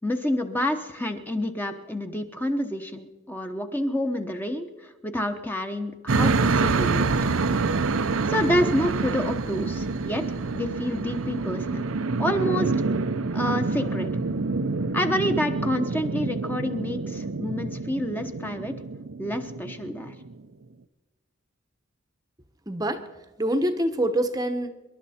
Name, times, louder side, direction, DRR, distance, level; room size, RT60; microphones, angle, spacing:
voice 1, 0.0-7.1 8.3-10.2 10.5-11.8 12.2-12.7 13.3-14.1 14.9-18.7 19.2-20.1, equal, 10° left, 5 dB, 0.9 m, -28 dB
sound 1, 6.1-20.3, right 3 dB, 85° right, 0.7 m, -27 dB
voice 2, 22.7-23.1 23.4-24.7, right 1 dB, 20° right, 8 dB, 0.9 m, -25 dB
26.0 x 11.5 x 4.3 m, 1.3 s
head